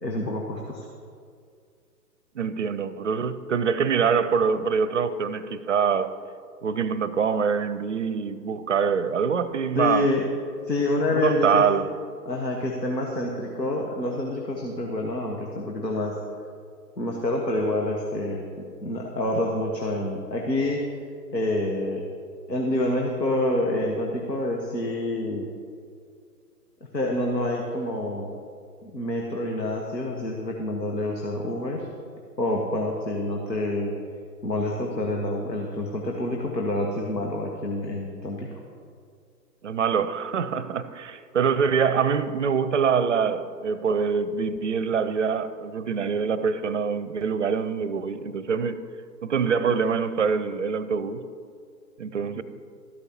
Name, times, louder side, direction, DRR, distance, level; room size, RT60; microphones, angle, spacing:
voice 1, 0.0-0.9 9.7-10.2 10.7-11.7 12.2-16.2 17.0-18.4 18.8-20.9 21.3-22.0 22.5-25.4 26.9-28.3 28.8-31.9 32.4-33.9 34.4-38.5, left 1 dB, 85° left, 1.4 m, -27 dB
voice 2, 2.4-6.1 6.6-10.1 11.1-11.9 39.6-48.8 49.2-51.3 52.0-52.4, right 6 dB, 50° right, 0.5 m, -25 dB
13.5 x 11.5 x 2.9 m
figure-of-eight pair, 125°, 49 cm